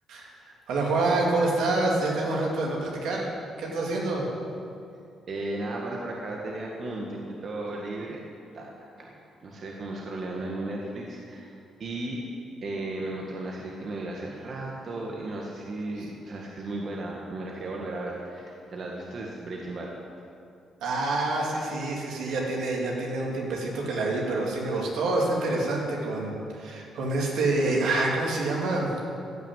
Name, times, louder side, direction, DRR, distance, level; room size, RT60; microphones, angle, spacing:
voice 1, 0.7-3.3 3.6-4.3 20.8-28.9, right 2 dB, 80° right, -2 dB, 2.9 m, -27 dB
voice 2, 5.3-8.2 8.5-11.5 11.8-12.2 12.6-19.9, right 2 dB, 50° right, -2 dB, 1.8 m, -35 dB
15.5 x 6.0 x 9.3 m, 2.5 s
cardioid pair, 90°, 0 cm